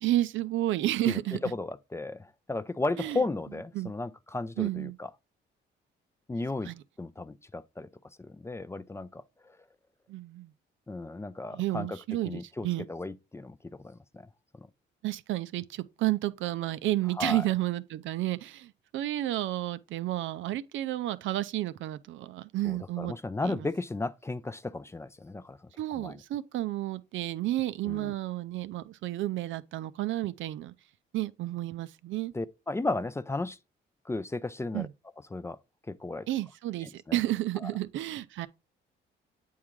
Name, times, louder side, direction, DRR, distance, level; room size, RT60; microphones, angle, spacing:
voice 1, 0.0-1.4 3.0-3.2 3.7-3.9 4.6-5.0 6.6-6.8 10.1-10.5 11.5-12.8 15.0-23.2 23.4-23.7 25.8-30.7 31.1-32.3 34.7-34.9 36.3-38.5, right 15 dB, 75° right, 0.5 m, -31 dB
voice 2, 1.1-5.1 6.3-6.7 7.0-7.9 8.2-9.6 10.9-12.0 12.2-14.3 14.5-14.7 17.2-17.5 22.6-25.6 25.9-26.2 27.8-28.1 32.3-33.6 34.1-34.9 35.3-35.6 35.9-36.3 36.8-37.2 37.6-37.7, left 2 dB, 15° left, 0.4 m, -35 dB
8.5 x 3.6 x 3.1 m
cardioid pair, 90°, 20 cm